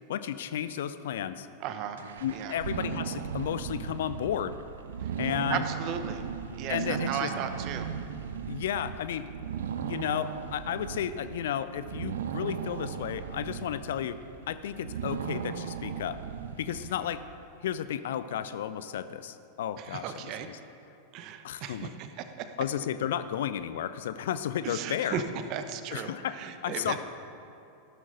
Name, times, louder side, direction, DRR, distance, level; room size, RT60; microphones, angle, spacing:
voice 1, 0.1-1.5 2.2-4.6 5.2-5.6 6.7-7.3 8.5-9.3 9.8-14.2 14.5-16.2 16.6-17.2 17.6-20.1 21.4-21.9 22.6-25.2 25.9-26.4 26.6-27.0, left 10 dB, 60° left, 13 dB, 0.5 m, -33 dB
voice 2, 1.6-2.0 2.3-2.5 5.0-5.1 5.5-6.2 6.5-7.9 19.8-20.5 21.1-22.5 24.6-25.2 25.5-27.0, right 8 dB, 40° right, 9 dB, 0.9 m, -36 dB
sound 1, 2.0-17.4, right 8 dB, 60° right, 0.6 m, -37 dB
14.0 x 12.5 x 3.9 m, 2.8 s
figure-of-eight pair, 90°, 0 cm